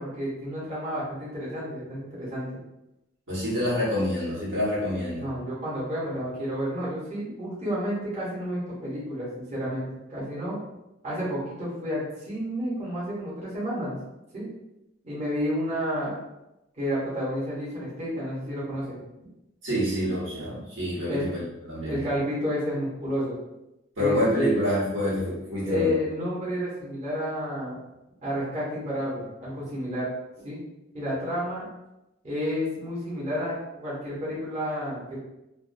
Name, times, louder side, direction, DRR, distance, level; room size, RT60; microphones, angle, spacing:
voice 1, 0.0-2.6 5.2-10.6 11.0-14.0 14.3-14.5 15.0-16.2 16.8-19.0 21.0-21.3 21.9-23.4 24.0-24.6 25.6-27.8 28.2-30.1 30.4-30.6 30.9-31.7 32.2-35.2, equal, 35° right, -8 dB, 0.9 m, -30 dB
voice 2, 3.3-5.2 19.6-22.0 24.0-25.9, equal, 85° right, -8 dB, 1.2 m, -27 dB
2.5 x 2.2 x 2.5 m, 0.92 s
head